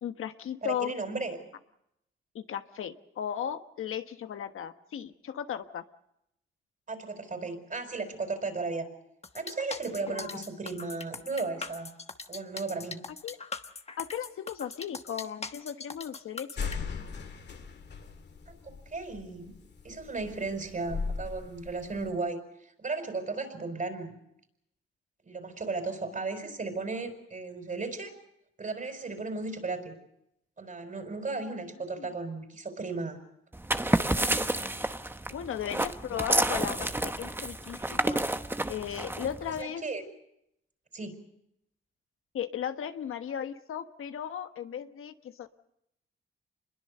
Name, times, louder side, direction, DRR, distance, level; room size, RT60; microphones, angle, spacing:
voice 1, 0.0-0.9 2.3-5.8 10.1-10.4 13.2-13.4 14.0-16.7 31.9-32.1 35.3-38.2 38.7-39.8 42.3-45.5, left 9 dB, 80° left, 8 dB, 1.3 m, -36 dB
voice 2, 0.6-1.4 6.9-8.9 9.3-11.9 12.3-13.0 18.5-19.5 19.8-22.4 22.8-24.1 25.2-28.1 28.6-30.0 30.6-33.2 36.2-36.3 39.6-40.0 40.9-41.2, right 3 dB, 40° right, 6 dB, 5.0 m, -35 dB
sound 1, 9.2-16.8, left 4 dB, 30° left, 1.2 m, -41 dB
sound 2, 16.6-22.1, left 5 dB, 55° left, 2.1 m, -38 dB
sound 3, 33.5-39.6, right 1 dB, 10° right, 1.0 m, -30 dB
26.5 x 21.5 x 6.7 m, 0.79 s
cardioid pair, 100°, 21 cm